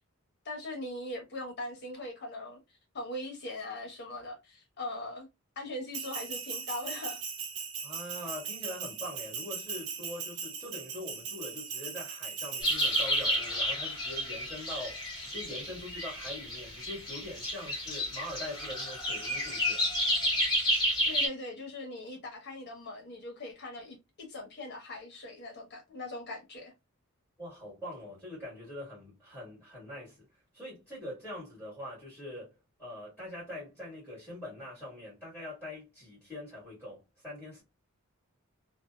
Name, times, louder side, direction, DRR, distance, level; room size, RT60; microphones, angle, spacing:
voice 1, 0.4-2.6 2.9-5.3 5.6-7.2 21.1-26.7, left 1 dB, 50° left, 0.9 m, -40 dB
Bell, 5.9-13.4, right 6 dB, 75° right, 0.6 m, -39 dB
voice 2, 7.8-19.8 27.4-30.2 30.5-37.6, left 1 dB, ahead, 1.5 m, -43 dB
sound 1, 12.6-21.3, equal, 20° left, 1.2 m, -31 dB
2.7 x 2.1 x 2.2 m
head